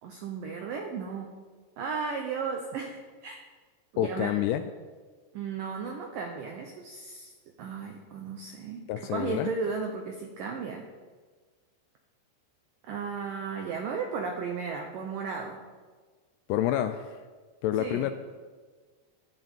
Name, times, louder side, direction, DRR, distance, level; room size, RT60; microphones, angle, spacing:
voice 1, 0.0-1.3 1.8-3.4 3.9-4.4 5.3-7.3 7.6-10.9 12.8-15.6 17.8-18.1, right 5 dB, 85° right, 2 dB, 1.9 m, -35 dB
voice 2, 4.0-4.6 8.9-9.5 16.5-17.2 17.6-18.1, left 12 dB, 85° left, 9 dB, 2.4 m, -28 dB
18.0 x 12.5 x 3.7 m, 1.4 s
omnidirectional pair, 5.3 m